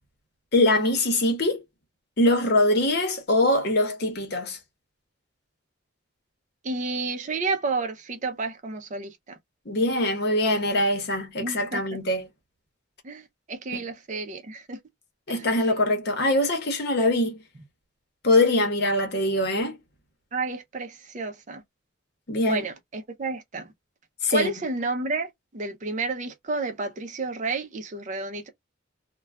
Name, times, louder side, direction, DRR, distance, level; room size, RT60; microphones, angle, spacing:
voice 1, 0.5-1.6 2.2-4.6 9.7-12.3 13.7-13.9 15.3-17.4 18.2-19.8 22.3-22.7 24.2-24.5, left 1 dB, 55° left, 0.9 m, -23 dB
voice 2, 6.6-9.4 11.4-11.8 13.0-13.2 13.5-14.8 15.3-15.5 20.3-21.6 22.4-23.7 24.3-25.3 25.5-28.5, right 3 dB, 40° right, 0.5 m, -31 dB
2.3 x 2.2 x 3.2 m
head